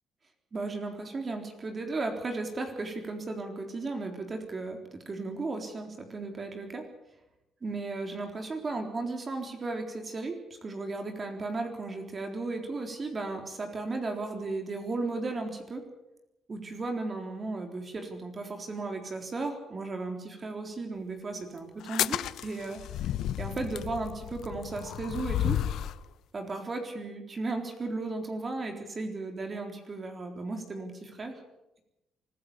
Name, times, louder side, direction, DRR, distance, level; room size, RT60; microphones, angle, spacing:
voice 1, 0.5-6.9 7.6-10.4 10.6-15.8 16.5-25.6 26.3-31.4, right 3 dB, 35° right, 4 dB, 3.9 m, -35 dB
sound 1, 21.8-26.0, left 11 dB, 80° left, 0.8 m, -32 dB
25.0 x 14.5 x 8.6 m, 0.91 s
cardioid pair, 90°, 0 cm